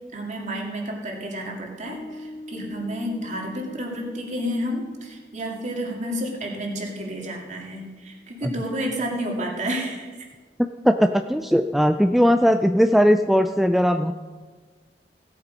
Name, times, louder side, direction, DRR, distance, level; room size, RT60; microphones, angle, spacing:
voice 1, 0.1-10.1, equal, 45° right, 0 dB, 2.4 m, -30 dB
Bass guitar, 1.9-9.0, left 1 dB, 55° left, 2.6 m, -45 dB
voice 2, 10.6-14.1, equal, ahead, 7 dB, 0.3 m, -19 dB
16.5 x 8.2 x 5.2 m, 1.4 s
head